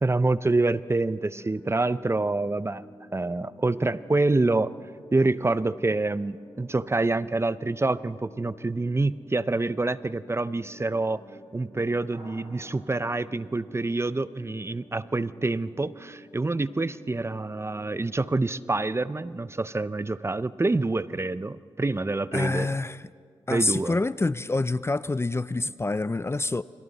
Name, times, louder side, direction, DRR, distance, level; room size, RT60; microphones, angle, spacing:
voice 1, 0.0-2.8 3.1-4.7 5.1-11.2 11.5-22.8 23.5-24.0, right 2 dB, 25° right, 16 dB, 0.6 m, -26 dB
sound 1, 0.8-19.3, equal, 40° left, 5.0 m, -51 dB
sound 2, 12.1-14.8, right 1 dB, 50° right, 6.9 m, -54 dB
voice 2, 22.3-23.0 23.5-26.6, left 2 dB, 25° left, 17 dB, 0.5 m, -27 dB
29.5 x 26.0 x 4.2 m, 2.1 s
cardioid pair, 50°, 11 cm